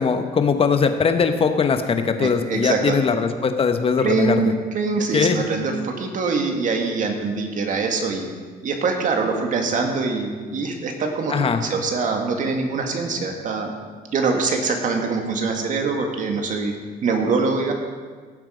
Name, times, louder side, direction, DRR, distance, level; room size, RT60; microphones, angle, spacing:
voice 1, 0.0-4.4 5.1-5.4 11.3-11.6, left 5 dB, 35° left, 7 dB, 1.1 m, -20 dB
voice 2, 2.2-3.0 4.0-8.3 8.6-13.7 14.1-16.7 17.0-17.7, right 4 dB, 50° right, 3 dB, 2.0 m, -23 dB
17.5 x 7.4 x 5.1 m, 1.5 s
cardioid pair, 110°, 17 cm